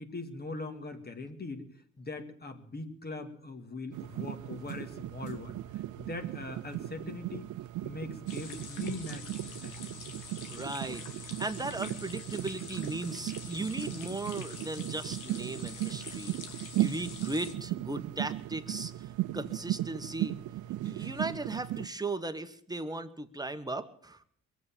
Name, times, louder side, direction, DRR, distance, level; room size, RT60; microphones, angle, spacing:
voice 1, 0.0-1.7 2.0-5.5 6.0-7.5 7.8-9.2 9.6-9.8, left 3 dB, 30° left, 8 dB, 2.2 m, -41 dB
sound 1, 3.9-21.9, right 15 dB, 75° right, 0.6 m, -37 dB
sound 2, 8.3-17.5, left 6 dB, 80° left, 2.1 m, -46 dB
voice 2, 10.5-16.4 16.8-20.4 20.8-24.2, right 2 dB, 15° right, 8 dB, 1.2 m, -37 dB
22.0 x 8.3 x 7.4 m, 0.63 s
cardioid pair, 90°, 30 cm